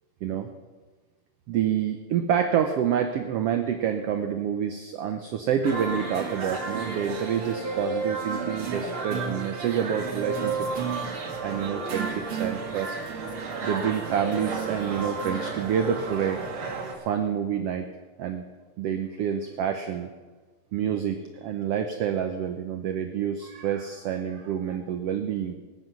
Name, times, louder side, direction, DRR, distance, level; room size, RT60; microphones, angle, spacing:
voice 1, 1.5-10.8 11.4-13.0 13.6-16.4 16.9-17.9 18.2-18.5 18.8-20.1 20.7-25.5, right 8 dB, 85° right, 7 dB, 1.3 m, -28 dB
sound 1, 5.6-16.9, right 4 dB, 45° right, 2.2 m, -32 dB
19.5 x 9.7 x 6.0 m, 1.3 s
omnidirectional pair, 3.8 m